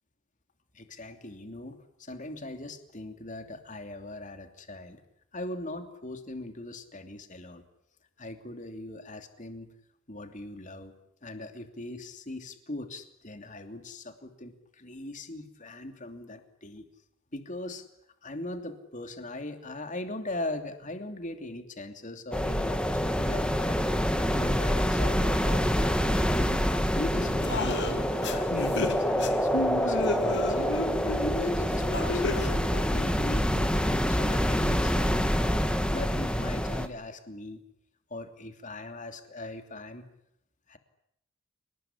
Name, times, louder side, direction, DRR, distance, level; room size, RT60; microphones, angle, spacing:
voice 1, 0.7-5.0 5.3-7.6 8.2-9.7 10.1-10.9 11.2-16.9 17.3-17.9 18.2-23.8 24.0-26.6 26.9-30.7 31.1-35.3 35.9-37.6 38.1-40.1 40.7-40.8, left 1 dB, 35° left, 7 dB, 2.9 m, -40 dB
sound 1, 22.3-36.9, equal, 5° left, 1.7 m, -26 dB
sound 2, 27.1-32.5, left 2 dB, 55° left, 2.3 m, -33 dB
28.5 x 19.5 x 9.9 m, 0.76 s
head